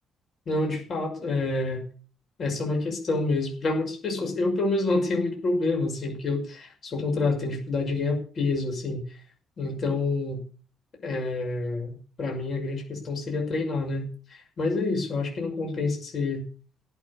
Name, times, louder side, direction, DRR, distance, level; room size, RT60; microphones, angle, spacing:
voice 1, 0.5-1.8 2.4-9.0 9.6-10.4 11.0-16.4, left 3 dB, 40° left, 1 dB, 6.2 m, -28 dB
17.5 x 6.6 x 8.4 m, 0.40 s
cardioid pair, 145°, 0 cm